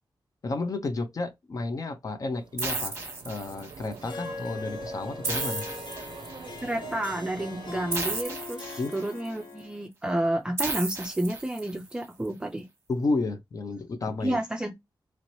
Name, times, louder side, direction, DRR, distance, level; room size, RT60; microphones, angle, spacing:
voice 1, 0.4-2.9 3.2-5.6 8.8-9.0 12.9-14.4, left 3 dB, 45° left, 0.5 m, -31 dB
sound 1, 2.3-8.2, right 5 dB, 75° right, 0.4 m, -46 dB
sound 2, 2.6-3.9 5.2-6.6 7.9-9.3 10.6-11.9, right 3 dB, 30° right, 0.9 m, -34 dB
Harp, 4.0-9.8, left 3 dB, 65° left, 0.9 m, -40 dB
voice 2, 6.6-12.7 14.2-14.7, right 1 dB, 10° right, 0.4 m, -30 dB
3.0 x 2.8 x 2.9 m
wide cardioid pair, 150°, 8 cm